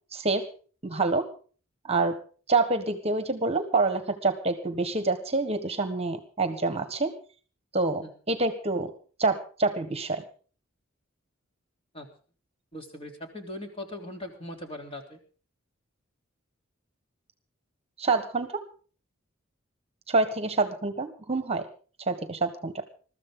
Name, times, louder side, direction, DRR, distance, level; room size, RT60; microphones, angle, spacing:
voice 1, 0.1-0.5 0.8-1.3 1.8-2.2 2.5-7.1 7.7-8.9 9.2-10.2 18.0-18.5 20.1-21.7 22.1-22.8, right 3 dB, 30° right, 9 dB, 1.5 m, -27 dB
voice 2, 12.7-15.2, left 1 dB, 30° left, 2 dB, 3.4 m, -40 dB
22.0 x 14.0 x 3.9 m, 0.40 s
head